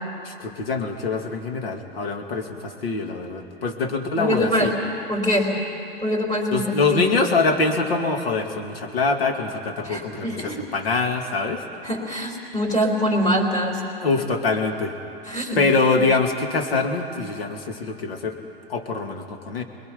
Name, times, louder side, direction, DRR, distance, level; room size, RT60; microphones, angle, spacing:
voice 1, 0.2-4.7 6.5-11.6 14.0-15.0 15.6-18.4 18.7-19.6, left 4 dB, 75° left, 4 dB, 2.6 m, -24 dB
voice 2, 4.2-4.7 5.1-5.5 6.0-7.0 9.8-10.6 11.8-13.8 15.3-15.6, equal, 15° left, -1 dB, 4.0 m, -24 dB
28.5 x 21.5 x 5.4 m, 2.7 s
hypercardioid pair, 105°, 30 cm